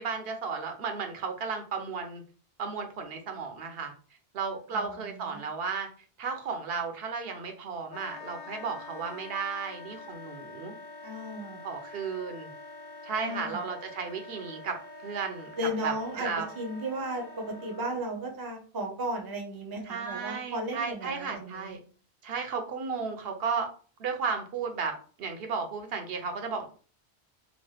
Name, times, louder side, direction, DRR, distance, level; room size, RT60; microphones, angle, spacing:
voice 1, 0.0-2.2 2.6-3.9 4.3-5.9 6.2-10.8 11.6-12.5 13.0-15.5 15.8-16.5 19.9-21.8 22.2-23.7 24.0-26.7, right 5 dB, 75° right, 5 dB, 0.8 m, -34 dB
voice 2, 4.7-5.4 11.0-11.6 13.2-13.6 15.6-16.3 16.6-21.7, right 1 dB, 25° right, 2 dB, 0.5 m, -35 dB
Wind instrument woodwind instrument, 7.9-18.0, left 2 dB, 75° left, 0.8 m, -46 dB
2.9 x 2.1 x 3.1 m, 0.40 s
omnidirectional pair, 1.0 m